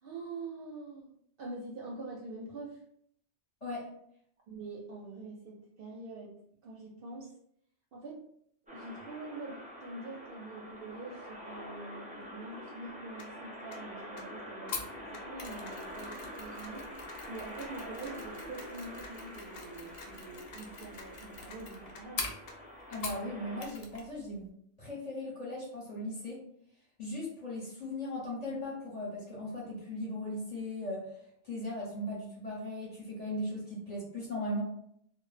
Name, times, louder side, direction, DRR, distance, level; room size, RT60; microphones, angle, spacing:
voice 1, 0.0-1.1 1.4-2.8 4.5-6.3 6.6-7.3 7.9-8.2 8.7-16.9 17.3-22.3, right 3 dB, 60° right, -2 dB, 0.6 m, -45 dB
sound 1, 8.7-23.7, equal, 15° right, 0.3 m, -46 dB
sound 2, 13.2-13.3 13.7-13.8 14.2-14.3 14.7-14.8 15.1-15.2 15.7-15.8 16.1-16.2 16.6-16.7 17.1-17.2 17.6-17.7 18.1-18.2 18.6-18.7 19.0-19.1 19.6-19.7 20.0-20.1 20.5-20.6 21.0-21.1 21.5-21.6 22.0-22.1 22.5-22.6 22.9-23.0, left 4 dB, 85° left, 0.9 m, -49 dB
Mechanisms, 14.7-23.3 23.6-24.1 24.3-24.5, left 3 dB, 60° left, 0.4 m, -44 dB
voice 2, 22.9-24.5 24.8-26.5 27.0-31.0 31.4-34.6, left 1 dB, 40° left, -5 dB, 0.7 m, -38 dB
2.0 x 2.0 x 3.1 m, 0.68 s
omnidirectional pair, 1.2 m